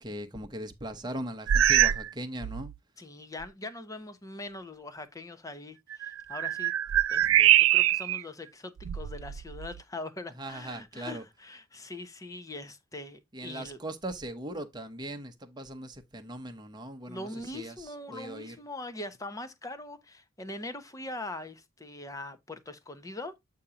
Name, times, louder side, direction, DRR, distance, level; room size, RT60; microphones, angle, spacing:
voice 1, 0.0-2.7 7.2-7.4 10.3-11.3 13.3-18.6, right 1 dB, 20° right, 0.9 m, -39 dB
sound 1, 1.5-2.1 2.4-2.7 3.4-3.5 5.9-8.2 8.8-9.8, right 12 dB, 85° right, 0.4 m, -24 dB
voice 2, 3.0-6.7 7.1-13.8 17.1-23.3, left 2 dB, 15° left, 0.8 m, -42 dB
8.3 x 2.8 x 4.9 m
head